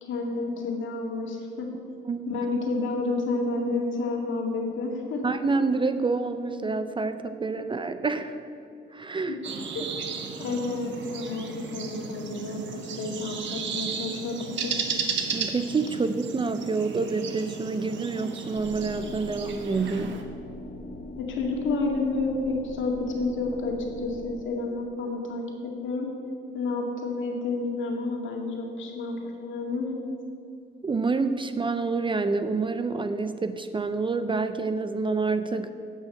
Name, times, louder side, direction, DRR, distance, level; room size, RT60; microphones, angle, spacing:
voice 1, 0.0-1.7 2.3-5.4 7.6-7.7 9.3-9.4 9.7-9.9 10.4-14.7 21.2-26.1 26.5-29.9, left 3 dB, 75° left, 1 dB, 2.0 m, -30 dB
voice 2, 5.2-8.4 8.9-9.4 9.8-9.9 15.3-20.1 30.8-35.7, right 4 dB, 25° right, 10 dB, 0.5 m, -27 dB
sound 1, 9.4-20.2, right 5 dB, 65° right, 1.1 m, -34 dB
sound 2, 18.5-24.3, left 1 dB, 55° left, 2.0 m, -41 dB
9.3 x 6.2 x 7.7 m, 2.6 s
cardioid pair, 90°, 20 cm